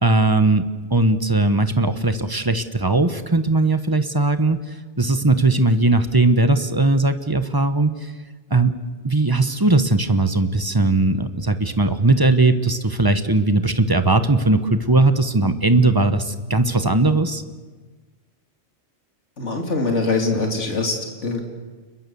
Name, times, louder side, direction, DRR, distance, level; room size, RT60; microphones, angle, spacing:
voice 1, 0.0-4.6 5.0-8.1 8.5-8.8 9.0-17.4, right 2 dB, 20° right, 10 dB, 1.3 m, -19 dB
voice 2, 19.4-21.5, left 3 dB, 85° left, 2 dB, 3.1 m, -23 dB
30.0 x 21.5 x 7.1 m, 1.3 s
omnidirectional pair, 1.2 m